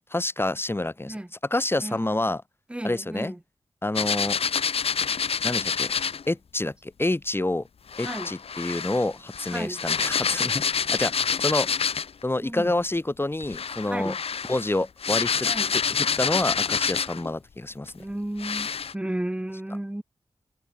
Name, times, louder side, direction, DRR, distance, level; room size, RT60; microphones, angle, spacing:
voice 1, 0.0-2.4 2.8-3.3 3.8-4.4 5.4-5.9 6.3-7.7 8.0-11.1 11.4-11.7 12.2-14.2 14.4-15.5 15.9-18.0, left 2 dB, 25° left, 1.7 m, -28 dB
voice 2, 1.8-2.2 2.7-3.4 8.0-8.3 9.5-9.8 12.4-12.7 13.9-14.1 15.4-15.7 18.0-18.7 18.9-20.0, right 1 dB, 10° right, 0.8 m, -33 dB
sound 1, 3.9-6.2 7.9-12.2 13.4-17.3 17.9-18.0 18.4-18.9, left 6 dB, 80° left, 1.1 m, -27 dB
cardioid pair, 50°, 10 cm